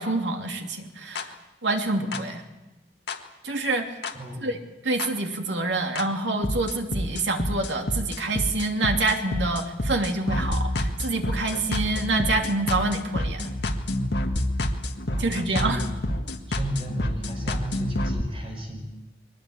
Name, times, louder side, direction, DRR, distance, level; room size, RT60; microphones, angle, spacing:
voice 1, 0.0-1.3 1.6-2.4 3.4-3.9 4.4-4.6 4.8-13.5 15.2-15.8, right 2 dB, 90° right, 3 dB, 2.8 m, -27 dB
sound 1, 1.2-1.3 2.1-2.2 3.1-3.2 4.0-4.1 5.0-5.1 6.0-6.1 6.4-18.2, left 1 dB, 75° left, 1.7 m, -28 dB
voice 2, 4.2-4.5 15.1-15.9 16.5-18.9, equal, 30° right, 2 dB, 5.4 m, -34 dB
22.5 x 19.5 x 8.7 m, 1.0 s
head